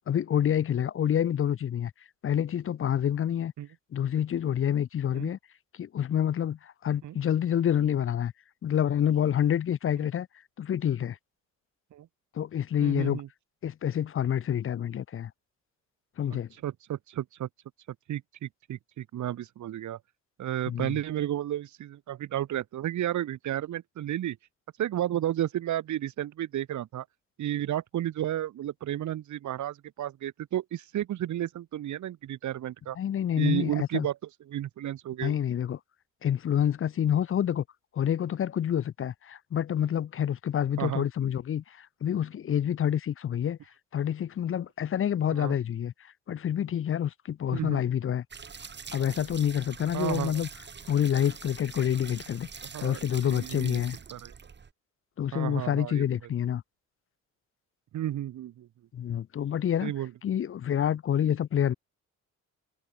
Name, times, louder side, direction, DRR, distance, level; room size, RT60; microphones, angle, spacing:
voice 1, 0.1-1.9 2.2-3.5 3.9-5.4 5.8-8.3 8.6-10.3 10.6-11.2 12.3-13.2 13.6-15.3 16.2-16.5 20.7-21.0 33.0-34.1 35.2-35.8 36.2-37.6 37.9-43.6 43.9-45.9 46.3-48.2 48.9-50.5 50.9-52.5 52.8-54.0 55.2-56.6 58.9-59.9 60.2-61.7, left 9 dB, 45° left, 0.7 m, -27 dB
voice 2, 12.8-13.3 16.6-17.5 18.1-20.0 20.4-24.4 24.8-27.0 27.4-33.0 33.4-34.2 34.5-35.4 40.8-41.0 45.3-45.5 47.5-47.8 49.9-50.4 52.7-53.8 54.1-54.3 55.3-56.0 57.9-58.7 59.8-60.1, right 12 dB, 70° right, 2.6 m, -32 dB
sound 1, 48.3-54.7, right 6 dB, 35° right, 2.6 m, -44 dB
cardioid pair, 90°, 30 cm